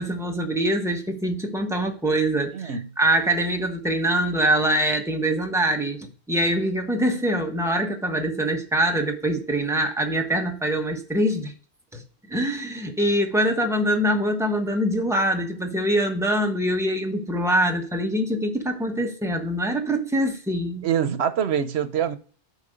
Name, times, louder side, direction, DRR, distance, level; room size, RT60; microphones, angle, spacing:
voice 1, 0.0-11.5 11.9-20.9, right 1 dB, 5° right, 1.2 m, -24 dB
voice 2, 20.8-22.2, right 8 dB, 85° right, 1.1 m, -24 dB
8.1 x 5.2 x 5.1 m
omnidirectional pair, 1.1 m